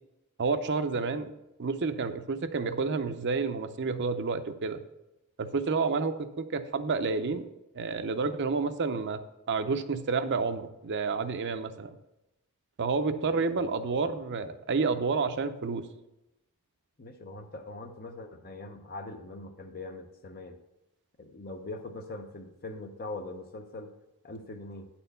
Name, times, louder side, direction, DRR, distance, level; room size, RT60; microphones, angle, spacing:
voice 1, 0.4-1.3 1.6-4.8 5.4-7.5 7.7-9.2 9.5-11.9 12.8-15.8, right 4 dB, 50° right, 9 dB, 0.6 m, -29 dB
voice 2, 13.3-14.1 17.0-20.6 21.2-23.9 24.2-24.9, left 2 dB, 40° left, 6 dB, 0.6 m, -42 dB
9.8 x 4.4 x 6.7 m, 0.91 s
head